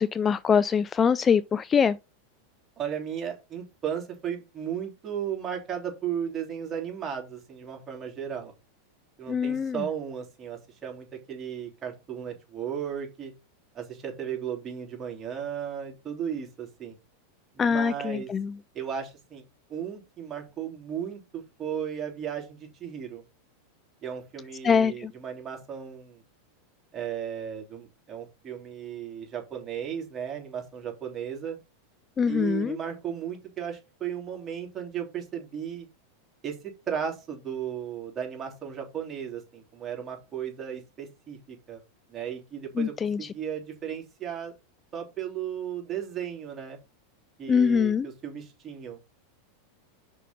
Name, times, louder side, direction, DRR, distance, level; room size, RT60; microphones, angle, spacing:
voice 1, 0.0-2.0 9.3-9.8 17.6-18.5 24.6-25.1 32.2-32.8 42.8-43.2 47.5-48.1, left 6 dB, 25° left, 0.4 m, -23 dB
voice 2, 2.8-8.5 9.2-13.3 13.7-17.0 17.6-18.3 18.7-19.4 19.7-23.2 24.0-26.2 26.9-31.6 32.3-35.9 36.4-36.6 36.9-41.8 42.1-44.5 44.9-46.8 47.4-49.0, right 8 dB, 30° right, 3.4 m, -35 dB
5.8 x 5.3 x 6.3 m
hypercardioid pair, 100°, 0 cm